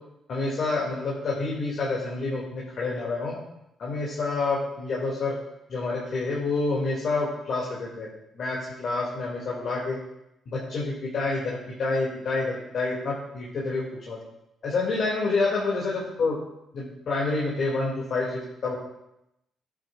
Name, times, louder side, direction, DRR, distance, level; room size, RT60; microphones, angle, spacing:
voice 1, 0.3-3.4 3.8-5.4 5.7-8.1 8.3-10.0 10.5-14.2 14.6-16.4 16.7-18.8, left 3 dB, 60° left, -5 dB, 2.6 m, -28 dB
12.5 x 8.7 x 2.5 m, 0.85 s
cardioid pair, 90°, 0 cm